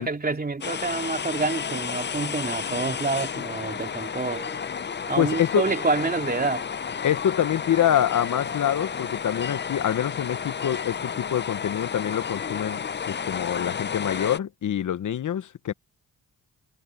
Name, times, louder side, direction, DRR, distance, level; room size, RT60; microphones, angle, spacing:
voice 1, 0.0-4.4 5.1-6.7, right 3 dB, 25° right, 2.9 m, -27 dB
sound 1, 0.6-14.4, left 6 dB, 30° left, 0.7 m, -32 dB
sound 2, 4.3-5.5, equal, ahead, 5.1 m, -46 dB
voice 2, 5.2-5.6 7.0-15.7, left 10 dB, 60° left, 1.0 m, -26 dB
cardioid pair, 65°, 34 cm